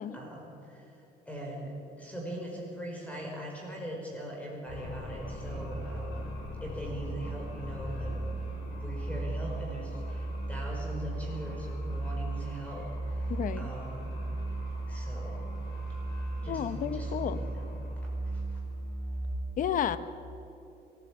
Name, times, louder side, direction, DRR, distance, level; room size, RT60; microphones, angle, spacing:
voice 1, 0.0-6.3 6.6-8.1 8.8-14.2 14.9-15.5 16.4-16.7 16.9-17.7 18.0-18.6, right 1 dB, 10° left, -2 dB, 5.1 m, -41 dB
sound 1, 4.7-19.4, right 2 dB, 80° left, 7.0 m, -36 dB
voice 2, 13.3-13.7 16.5-17.4 19.6-20.0, left 9 dB, 50° left, 13 dB, 1.0 m, -31 dB
23.0 x 14.5 x 8.7 m, 2.8 s
cardioid pair, 110°, 17 cm